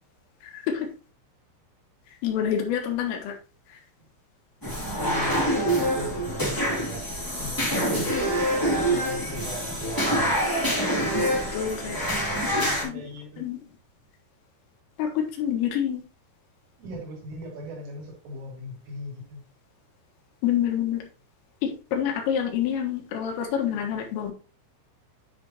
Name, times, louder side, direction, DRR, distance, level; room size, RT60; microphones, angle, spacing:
voice 1, 0.4-0.9 2.2-3.4 3.7-3.8 11.1-12.0 12.4-12.5 12.8-13.0 13.4-13.6 15.0-16.0 20.4-21.1 21.6-24.3, left 9 dB, 80° left, 4.1 m, -27 dB
sound 1, 4.6-12.8, equal, 10° left, 0.9 m, -26 dB
voice 2, 4.9-7.1 7.3-8.1 8.9-10.6 11.7-13.4 16.8-19.4, right 1 dB, 75° right, 5.4 m, -39 dB
10.0 x 5.1 x 2.9 m
omnidirectional pair, 5.8 m